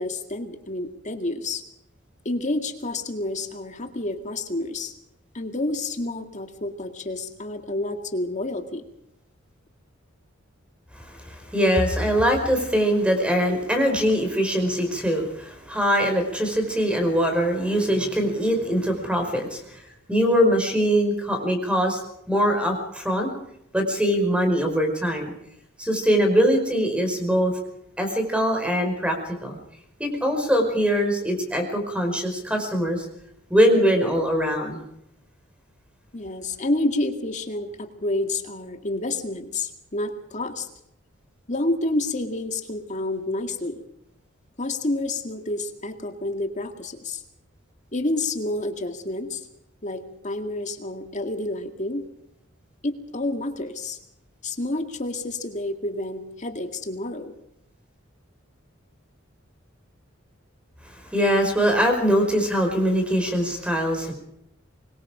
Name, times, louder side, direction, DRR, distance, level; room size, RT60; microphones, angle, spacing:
voice 1, 0.0-1.6 2.3-4.9 5.3-8.8 12.1-12.2 20.8-20.9 36.1-40.7 41.5-43.8 44.6-47.2 47.9-49.5 49.8-52.1 52.8-54.0 54.4-57.3, left 2 dB, 35° left, 6 dB, 2.1 m, -29 dB
voice 2, 10.9-19.8 20.1-22.0 22.3-23.3 23.7-25.3 25.8-27.5 28.0-29.6 30.0-33.1 33.5-34.8 60.9-64.1, equal, 5° right, 4 dB, 5.2 m, -22 dB
25.0 x 22.0 x 5.0 m, 0.77 s
head